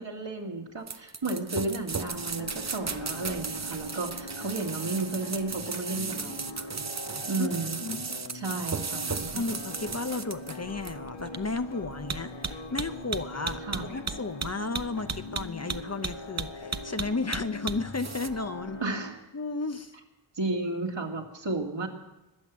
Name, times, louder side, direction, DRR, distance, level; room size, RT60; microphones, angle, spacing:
voice 1, 0.0-6.7 7.3-7.8 8.3-9.3 13.6-13.9 18.8-19.1 20.4-21.9, right 3 dB, 70° right, 1 dB, 2.4 m, -33 dB
sound 1, 0.9-18.3, right 5 dB, 35° right, 0.7 m, -35 dB
sound 2, 1.9-19.1, left 1 dB, 85° left, 1.6 m, -42 dB
voice 2, 9.4-18.8 19.3-19.9, left 3 dB, 35° left, 10 dB, 0.7 m, -34 dB
20.5 x 8.6 x 7.5 m, 0.98 s
wide cardioid pair, 65°, 46 cm